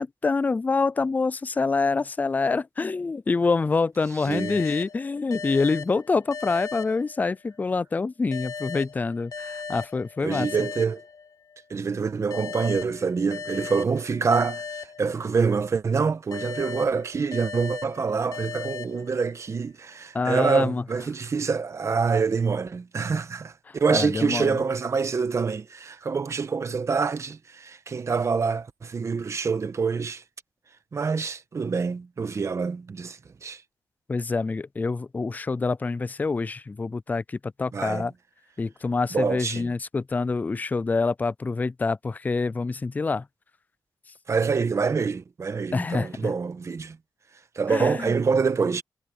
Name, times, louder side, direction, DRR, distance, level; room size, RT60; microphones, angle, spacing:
voice 1, 0.0-10.5 20.1-20.8 23.7-24.6 34.1-38.1 38.6-43.2 45.7-46.3 47.7-48.1, left 4 dB, 20° left, 0.3 m, -26 dB
voice 2, 4.2-4.6 10.2-11.0 11.7-30.2 30.9-33.6 37.7-38.1 39.1-39.7 44.3-47.0 47.5-48.8, right 5 dB, 40° right, 1.2 m, -26 dB
sound 1, 4.3-7.6 8.3-11.6 12.3-15.6 16.3-19.6, left 5 dB, 45° left, 1.1 m, -38 dB
wide cardioid pair, 125°, 8 cm